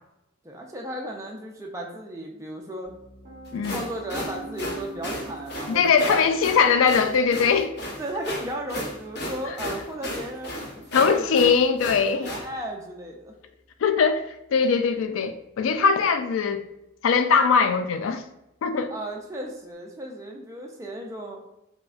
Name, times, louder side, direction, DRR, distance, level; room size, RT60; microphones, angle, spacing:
voice 1, 0.4-2.9 3.5-6.2 8.0-11.4 12.1-13.3 18.9-21.4, right 1 dB, 15° right, 0.4 m, -35 dB
Piano, 2.8-14.8, right 3 dB, 30° right, 1.0 m, -47 dB
sound 1, 3.5-12.5, left 1 dB, 55° left, 0.8 m, -34 dB
voice 2, 5.7-7.7 10.9-12.3 13.8-16.6 17.0-18.2 18.6-18.9, left 5 dB, 90° left, 0.3 m, -21 dB
4.7 x 2.1 x 2.4 m
head